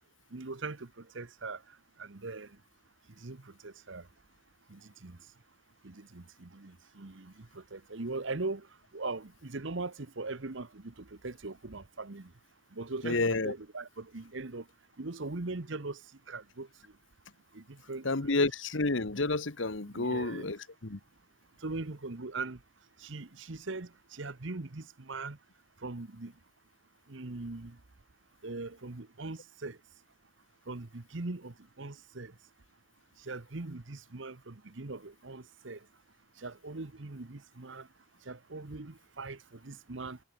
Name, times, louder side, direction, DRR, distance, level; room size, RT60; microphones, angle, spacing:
voice 1, 0.3-1.6 2.0-2.5 3.2-4.0 4.7-5.2 5.8-8.7 8.9-12.3 12.7-14.6 15.0-16.0 16.3-16.7 17.5-18.4 19.9-20.5 21.6-22.6 23.0-25.4 25.8-26.3 27.1-27.8 28.4-29.8 30.7-32.3 33.2-35.8 36.4-37.9 38.3-40.2, right 3 dB, 60° right, 1.1 m, -40 dB
voice 2, 13.0-13.5 18.0-21.0, left 3 dB, 60° left, 1.3 m, -30 dB
head